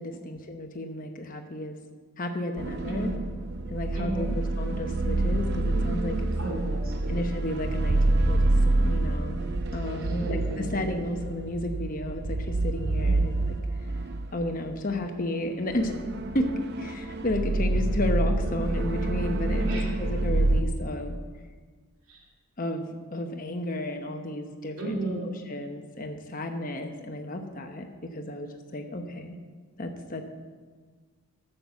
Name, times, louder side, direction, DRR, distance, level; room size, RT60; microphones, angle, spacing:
voice 1, 0.0-1.8 2.2-3.1 3.7-6.2 7.1-8.4 8.6-9.4 9.7-13.6 14.3-16.0 16.3-16.5 16.8-21.2 22.6-29.3 29.8-30.2, left 1 dB, 40° left, 4 dB, 1.0 m, -32 dB
sound 1, 2.6-14.7 15.0-15.1 15.7-20.6, right 2 dB, 50° right, 0.6 m, -27 dB
voice 2, 2.9-3.2 3.9-4.3 6.4-7.2 9.8-10.9 13.0-13.3 19.6-20.0 22.1-22.2 24.8-25.3, right 2 dB, 70° right, -2 dB, 2.8 m, -34 dB
11.0 x 6.6 x 7.1 m, 1.5 s
head